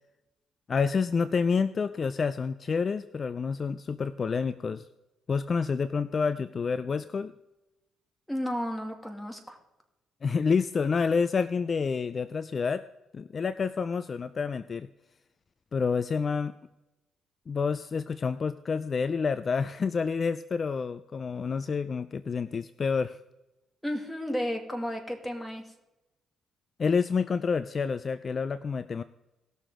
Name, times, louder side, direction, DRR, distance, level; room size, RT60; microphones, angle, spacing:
voice 1, 0.7-4.9 5.3-7.3 10.2-12.8 13.1-14.9 15.7-16.5 17.5-23.2 26.8-29.0, left 5 dB, 40° left, 14 dB, 0.4 m, -28 dB
voice 2, 8.3-9.6 23.8-25.6, equal, 5° left, 3 dB, 2.4 m, -33 dB
18.5 x 6.7 x 3.7 m, 0.97 s
cardioid pair, 90°, 0 cm